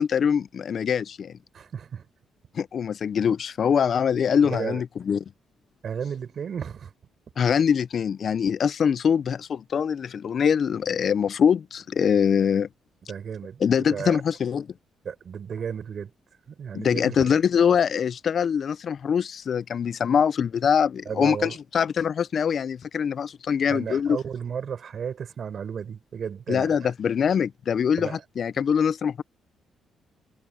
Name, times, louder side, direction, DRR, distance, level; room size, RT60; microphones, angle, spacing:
voice 1, 0.0-1.4 2.5-5.2 7.4-12.7 13.6-14.7 16.7-24.2 26.5-29.2, left 7 dB, 55° left, 0.4 m, -23 dB
voice 2, 1.5-2.1 4.4-4.8 5.8-6.9 13.1-14.2 15.0-16.1 16.5-17.3 21.1-21.6 23.7-26.9 28.0-28.2, right 7 dB, 55° right, 7.4 m, -33 dB
cardioid pair, 90°, 0 cm